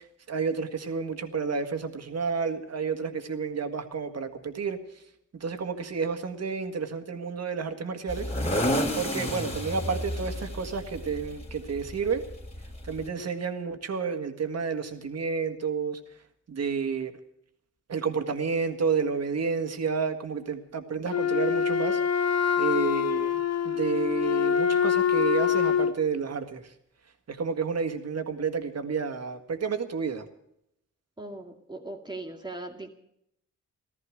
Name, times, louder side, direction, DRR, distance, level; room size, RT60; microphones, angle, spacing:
voice 1, 0.3-4.8 5.4-8.3 9.0-12.2 12.8-16.0 16.5-17.1 17.9-22.3 22.6-23.4 23.7-26.6 27.3-30.3, right 5 dB, 55° right, 7 dB, 1.8 m, -30 dB
sound 1, 8.1-13.1, equal, 20° left, 2.8 m, -31 dB
Wind instrument woodwind instrument, 21.1-26.0, left 8 dB, 55° left, 1.0 m, -25 dB
voice 2, 31.2-32.9, right 2 dB, 15° right, 0 dB, 2.1 m, -39 dB
15.0 x 13.5 x 6.3 m, 0.76 s
cardioid pair, 70°, 31 cm